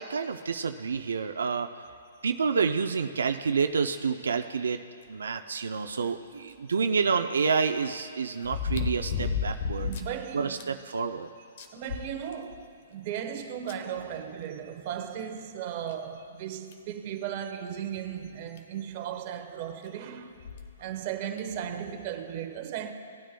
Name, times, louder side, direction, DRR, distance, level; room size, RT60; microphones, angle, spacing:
voice 1, 0.0-1.7 2.2-4.8 5.1-9.9 10.3-11.3, right 5 dB, 85° right, 0.5 m, -28 dB
sound 1, 6.5-6.6 8.4-10.1 10.6-10.7 11.1-11.2 11.6-12.7 13.7-13.8 15.2-15.3 15.9-16.0 16.7-16.9 18.3-18.4 18.6-18.7 20.4-20.7 21.4-21.5, left 6 dB, 50° left, 1.0 m, -32 dB
voice 2, 9.7-10.8 11.7-20.4 20.8-22.9, right 9 dB, 40° right, 1.0 m, -36 dB
17.5 x 9.2 x 2.2 m
hypercardioid pair, 150°, 0 cm